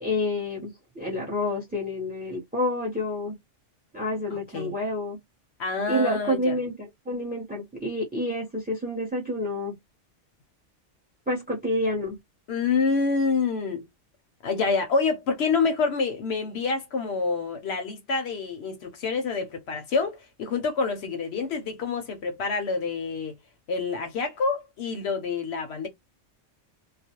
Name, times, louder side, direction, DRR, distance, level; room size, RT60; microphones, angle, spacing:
voice 1, 0.0-3.3 3.9-5.2 5.9-9.7 11.3-12.2, left 1 dB, 10° right, 0.6 m, -28 dB
voice 2, 4.3-4.7 5.6-6.6 12.5-13.8 14.4-23.4 23.7-25.9, left 4 dB, 65° left, 0.8 m, -27 dB
2.4 x 2.1 x 2.8 m
omnidirectional pair, 1.2 m